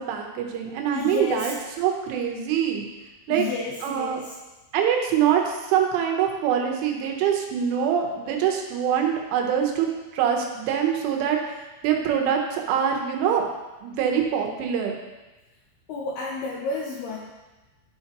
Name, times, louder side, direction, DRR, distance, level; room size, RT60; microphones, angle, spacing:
voice 1, 0.0-2.9 3.3-3.4 3.8-4.2 4.7-9.9 10.1-13.5 13.8-14.9, right 8 dB, 85° right, 2 dB, 3.4 m, -24 dB
voice 2, 0.9-1.5 3.3-4.3 15.9-17.2, left 4 dB, 75° left, -3 dB, 2.4 m, -31 dB
12.5 x 5.8 x 2.9 m, 1.1 s
omnidirectional pair, 5.5 m